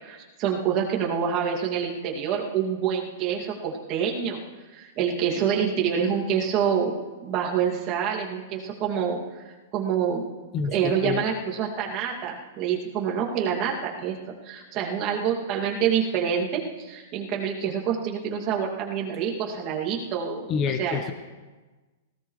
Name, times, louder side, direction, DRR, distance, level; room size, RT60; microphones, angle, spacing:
voice 1, 0.0-4.4 4.7-6.9 7.2-9.2 9.7-10.3 10.7-14.2 14.4-21.0, right 7 dB, 30° right, -2 dB, 2.5 m, -27 dB
voice 2, 10.5-11.2 20.5-21.1, left 5 dB, 25° left, 7 dB, 1.0 m, -27 dB
19.0 x 17.5 x 3.3 m, 1.3 s
hypercardioid pair, 165°, 0 cm